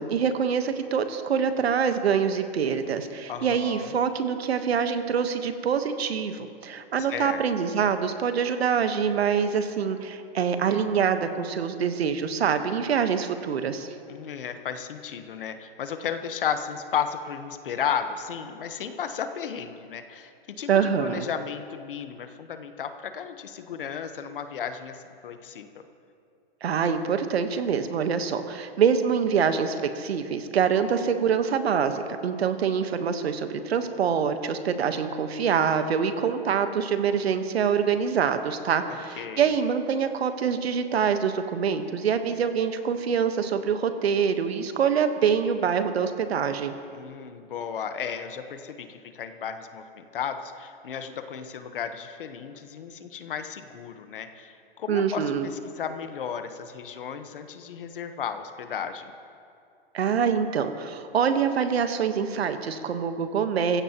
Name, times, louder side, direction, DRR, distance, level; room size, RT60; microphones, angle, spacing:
voice 1, 0.0-13.9 20.7-21.3 26.6-46.7 54.9-55.5 59.9-63.8, right 7 dB, 85° right, 8 dB, 1.3 m, -25 dB
voice 2, 3.3-4.0 7.0-7.4 14.1-25.9 38.9-39.5 46.9-59.1, left 7 dB, 60° left, 8 dB, 1.2 m, -34 dB
24.0 x 15.5 x 3.0 m, 2.5 s
hypercardioid pair, 175°, 31 cm